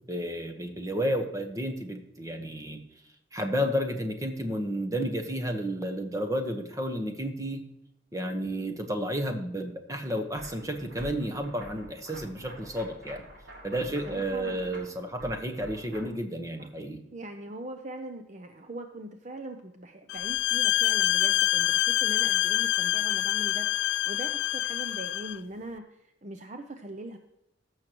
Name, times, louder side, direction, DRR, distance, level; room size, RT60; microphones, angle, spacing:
voice 1, 0.1-2.8 3.3-7.6 8.1-13.2 13.6-17.0, equal, 15° right, 5 dB, 1.0 m, -31 dB
sound 1, 10.3-16.0, equal, 80° right, 3.4 m, -47 dB
voice 2, 13.8-14.6 16.6-16.7 17.1-27.2, right 1 dB, 35° right, 6 dB, 0.6 m, -41 dB
sound 2, 20.1-25.4, left 13 dB, 65° left, 0.3 m, -26 dB
15.0 x 6.5 x 3.0 m, 0.84 s
head